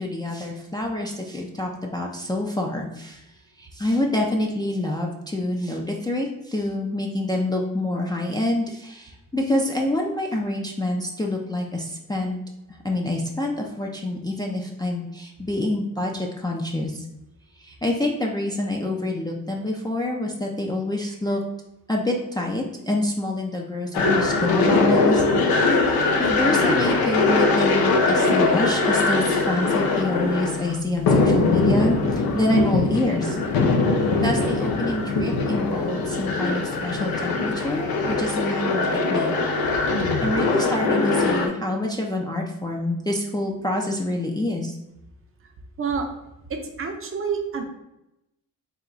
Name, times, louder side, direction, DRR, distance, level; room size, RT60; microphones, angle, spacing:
voice 1, 0.0-3.2 3.6-12.4 12.8-17.0 17.6-21.4 21.9-25.3 25.7-33.4 33.9-39.3 40.2-44.8, left 1 dB, 10° left, -1 dB, 0.4 m, -27 dB
sound 1, 23.9-41.5, left 3 dB, 85° left, 0.7 m, -21 dB
voice 2, 46.5-47.6, right 5 dB, 40° right, 3 dB, 0.6 m, -28 dB
4.2 x 2.3 x 3.8 m, 0.88 s
cardioid pair, 105°, 35 cm